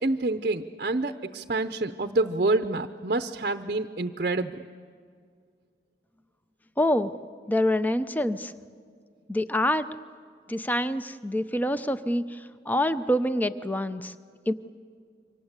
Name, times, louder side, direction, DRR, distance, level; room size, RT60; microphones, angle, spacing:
voice 1, 0.0-4.6, right 2 dB, 45° right, 8 dB, 0.7 m, -27 dB
voice 2, 6.8-7.1 7.5-8.5 9.3-9.9 10.5-14.1 14.5-14.6, left 1 dB, 10° left, 12 dB, 0.6 m, -26 dB
28.0 x 24.5 x 8.2 m, 2.1 s
head